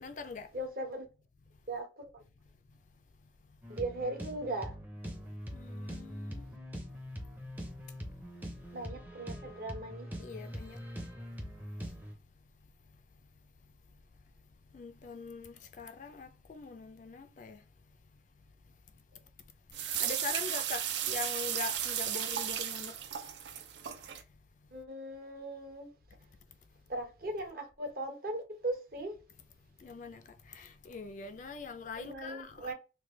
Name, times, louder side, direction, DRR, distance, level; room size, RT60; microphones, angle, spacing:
voice 1, 0.0-0.5 5.5-6.4 10.2-10.8 14.7-17.6 20.0-22.9 29.8-30.2 30.5-32.7, left 4 dB, 45° left, 0.3 m, -43 dB
voice 2, 0.5-1.1 1.7-2.2 3.7-4.7 8.7-10.1 24.7-25.9 26.9-29.2 32.0-32.7, right 1 dB, 50° right, 0.8 m, -38 dB
sound 1, 3.6-12.1, equal, 10° right, 0.5 m, -43 dB
sound 2, 19.7-24.2, right 10 dB, 70° right, 0.4 m, -35 dB
3.2 x 2.2 x 3.0 m
head